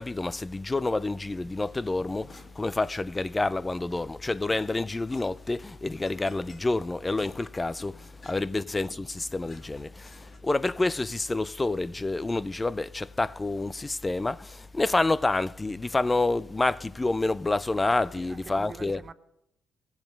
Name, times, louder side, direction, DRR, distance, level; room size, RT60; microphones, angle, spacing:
voice 1, 0.0-19.0, left 2 dB, 20° left, 0.4 m, -28 dB
sound 1, 1.7-3.3 3.6-10.7, left 3 dB, 35° left, 2.0 m, -54 dB
voice 2, 18.0-19.1, right 4 dB, 40° right, 0.8 m, -46 dB
16.5 x 7.2 x 5.3 m
cardioid pair, 90°, 0 cm